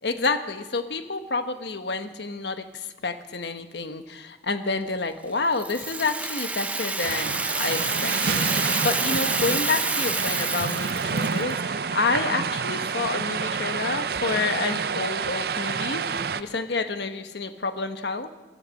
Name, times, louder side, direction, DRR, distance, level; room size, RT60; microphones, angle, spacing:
voice 1, 0.0-16.1 16.3-18.3, left 3 dB, 65° left, 9 dB, 1.1 m, -29 dB
Rattle (instrument), 5.6-11.5, right 3 dB, 10° right, 0.6 m, -28 dB
sound 1, 7.0-16.4, right 5 dB, 55° right, 0.5 m, -28 dB
16.0 x 13.0 x 6.4 m, 1.2 s
head